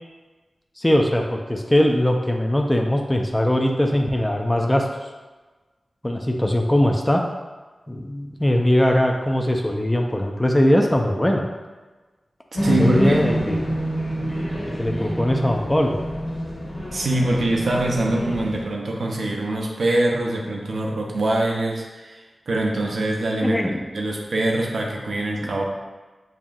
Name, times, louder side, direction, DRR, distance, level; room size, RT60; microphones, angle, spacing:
voice 1, 0.8-4.9 6.0-7.2 7.9-11.5 12.7-13.6 14.8-16.0 23.4-23.9 25.4-25.5, left 1 dB, 15° left, 1 dB, 0.4 m, -20 dB
sound 1, 12.5-18.6, equal, 55° left, 1.3 m, -26 dB
voice 2, 12.6-13.3 16.9-23.6 23.9-25.6, right 1 dB, 80° right, -1 dB, 0.6 m, -23 dB
5.4 x 2.5 x 2.4 m, 1.3 s
cardioid pair, 50°, 0 cm